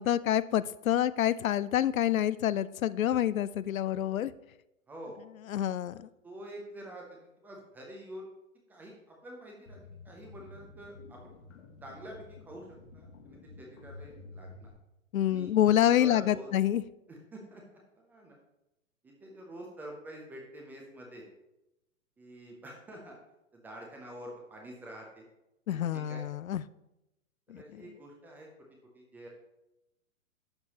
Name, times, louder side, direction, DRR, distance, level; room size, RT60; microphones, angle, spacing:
voice 1, 0.0-4.3 5.5-6.1 15.1-16.8 25.7-26.6 27.5-27.8, left 11 dB, 80° left, 16 dB, 0.5 m, -27 dB
voice 2, 4.9-5.2 6.2-8.3 8.7-9.8 10.0-11.3 11.8-14.7 15.3-15.5 15.8-16.5 17.1-18.4 19.0-21.3 22.2-23.2 23.5-25.3 25.7-26.2 27.5-28.5 28.9-29.3, right 1 dB, 5° right, -1 dB, 0.4 m, -47 dB
sound 1, 9.7-14.7, left 3 dB, 60° left, 1.5 m, -51 dB
11.5 x 6.8 x 2.9 m, 0.91 s
hypercardioid pair, 120°, 41 cm